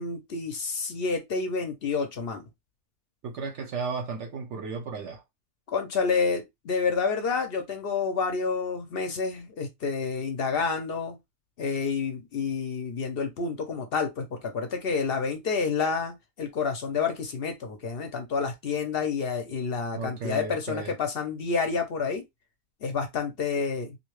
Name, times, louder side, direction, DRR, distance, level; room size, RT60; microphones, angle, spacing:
voice 1, 0.0-2.5 5.7-11.2 11.6-22.2 22.8-24.0, left 5 dB, 55° left, 0.7 m, -29 dB
voice 2, 3.2-5.2 19.9-20.9, right 4 dB, 65° right, 0.8 m, -34 dB
2.6 x 2.2 x 3.0 m
omnidirectional pair, 1.5 m